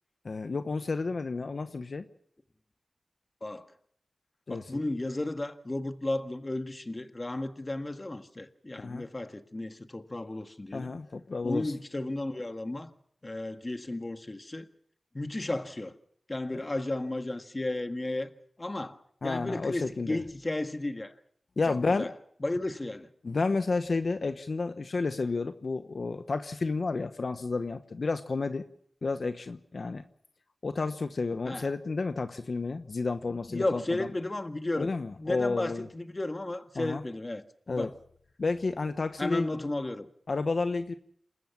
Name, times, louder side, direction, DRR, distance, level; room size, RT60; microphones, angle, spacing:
voice 1, 0.2-2.0 4.5-4.8 8.8-9.1 10.7-11.7 16.5-16.6 19.2-20.2 21.6-22.1 23.2-28.6 29.0-30.0 30.6-34.1 34.8-35.9 36.7-37.0 37.7-37.9 38.4-39.5 40.3-40.9, left 3 dB, 70° left, 1.0 m, -31 dB
voice 2, 4.5-10.9 11.4-12.9 13.2-14.7 15.1-15.9 16.3-18.3 18.6-21.1 21.7-22.1 22.4-23.1 31.5-31.7 33.5-34.9 35.2-37.9 39.2-40.1, left 2 dB, 35° left, 1.7 m, -34 dB
28.0 x 14.0 x 7.2 m
wide cardioid pair, 60°, 0 cm